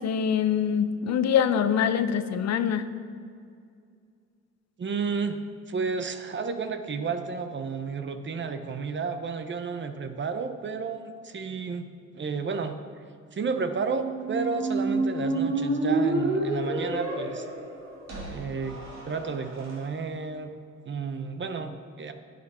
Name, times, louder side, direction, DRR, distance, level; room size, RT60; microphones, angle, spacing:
voice 1, 0.0-2.9, left 8 dB, 60° left, 11 dB, 0.7 m, -24 dB
voice 2, 4.8-5.4 5.7-11.8 12.1-12.8 13.3-17.5 18.3-20.5 20.9-22.1, right 5 dB, 40° right, 8 dB, 0.8 m, -32 dB
Squeak, 13.8-19.7, right 2 dB, 60° right, 2.8 m, -29 dB
10.5 x 8.5 x 4.3 m, 2.3 s
cardioid pair, 90°, 30 cm